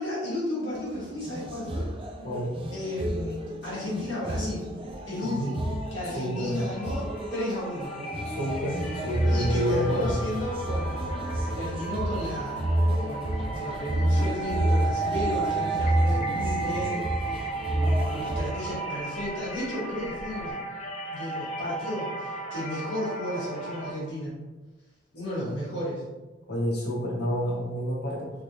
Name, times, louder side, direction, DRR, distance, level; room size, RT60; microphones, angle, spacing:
voice 1, 0.0-1.9 2.7-4.7 5.1-5.6 5.9-7.9 9.2-11.0 11.5-12.7 13.0-17.0 17.7-20.5 21.1-24.4 25.1-26.0, left 1 dB, 90° left, -8 dB, 1.5 m, -34 dB
sound 1, 0.7-18.5, right 1 dB, 30° right, 0.4 m, -30 dB
voice 2, 5.2-5.6 6.1-6.7 8.2-10.2 25.4-25.6 26.5-28.3, equal, 60° left, -3 dB, 1.0 m, -29 dB
sound 2, 5.3-5.6 5.8-23.9, right 3 dB, 35° left, 0.6 m, -35 dB
Motor vehicle (road) / Siren, 6.7-20.5, right 1 dB, 15° left, 1.5 m, -47 dB
3.3 x 3.0 x 2.6 m, 1.1 s
head